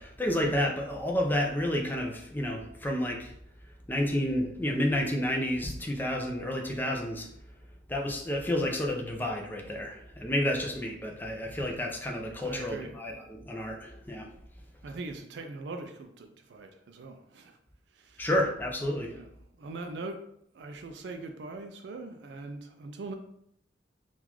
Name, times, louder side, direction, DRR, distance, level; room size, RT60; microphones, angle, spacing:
voice 1, 0.0-3.3 3.9-7.3 7.9-14.3 18.2-19.2, left 1 dB, 10° left, 0 dB, 0.5 m, -30 dB
voice 2, 12.4-12.9 14.8-17.6 17.9-18.3 19.1-19.3 19.5-20.2 20.5-23.1, right 3 dB, 65° right, 5 dB, 0.4 m, -41 dB
3.7 x 2.4 x 3.0 m, 0.72 s
head